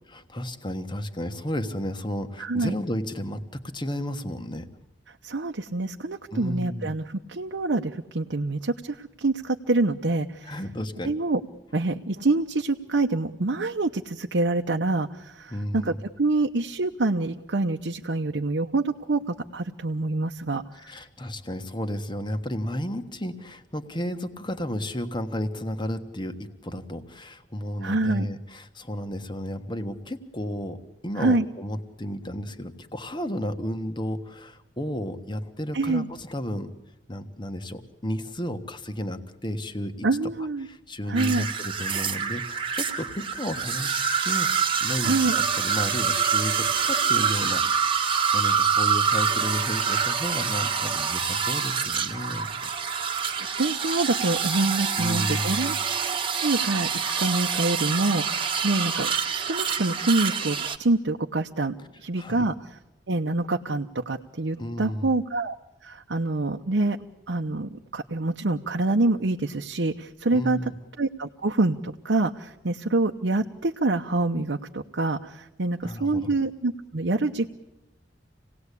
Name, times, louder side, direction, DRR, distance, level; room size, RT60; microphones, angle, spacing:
voice 1, 0.1-4.7 6.3-6.9 10.5-11.1 15.5-16.0 20.8-36.7 37.1-40.1 40.6-47.6 47.9-52.7 55.0-55.7 62.2-62.5 64.6-65.1 70.3-70.7 75.8-76.3, equal, 25° left, 8 dB, 1.4 m, -33 dB
voice 2, 2.4-2.7 5.2-10.6 11.0-11.4 11.7-20.6 27.8-28.3 31.2-31.4 35.7-36.1 40.0-40.7 41.1-41.5 45.0-45.3 53.4-55.7 56.3-61.7 62.0-62.8 63.1-65.6 65.8-67.0 67.3-70.7 71.0-77.5, right 2 dB, 90° right, 2 dB, 0.9 m, -26 dB
sound 1, 41.2-60.8, right 6 dB, 30° right, 1.4 m, -26 dB
27.0 x 18.0 x 8.4 m, 0.99 s
head